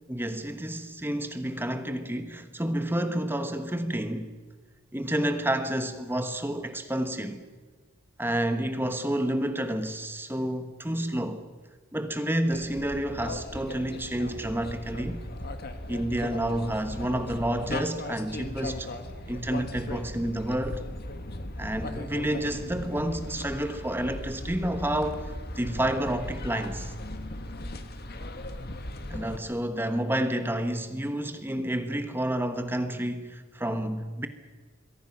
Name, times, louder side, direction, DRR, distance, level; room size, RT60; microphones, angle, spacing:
voice 1, 0.1-4.3 4.9-7.4 8.2-11.4 11.9-15.2 15.9-18.9 19.3-20.8 21.6-26.9 29.1-34.3, right 1 dB, 10° right, 1.3 m, -30 dB
sound 1, 12.5-29.4, left 1 dB, 45° left, 1.8 m, -38 dB
27.0 x 22.5 x 6.0 m
head